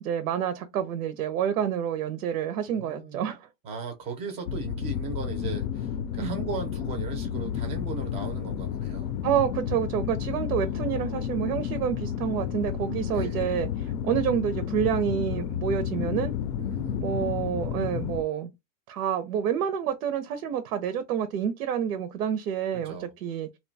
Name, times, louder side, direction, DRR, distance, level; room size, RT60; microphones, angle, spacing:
voice 1, 0.0-3.5 6.2-6.4 9.2-16.3 17.0-18.5 18.9-23.5, right 9 dB, 85° right, 0.7 m, -28 dB
voice 2, 2.7-3.2 3.6-9.1 10.6-11.3 13.1-13.4 16.6-17.0 22.7-23.1, right 4 dB, 15° right, 0.4 m, -38 dB
sound 1, 4.5-18.2, left 9 dB, 80° left, 0.5 m, -31 dB
2.6 x 2.2 x 2.6 m
supercardioid pair, 155°, 44 cm